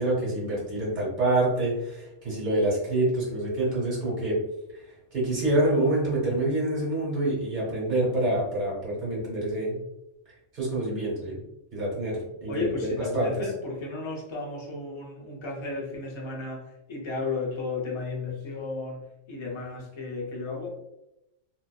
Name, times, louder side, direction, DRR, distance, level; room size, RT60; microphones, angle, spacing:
voice 1, 0.0-4.4 5.1-9.8 10.5-11.4 11.7-13.3, right 1 dB, 40° right, -6 dB, 1.1 m, -26 dB
voice 2, 12.5-20.7, left 3 dB, 50° left, -2 dB, 0.3 m, -34 dB
2.5 x 2.2 x 2.2 m, 0.89 s
omnidirectional pair, 1.3 m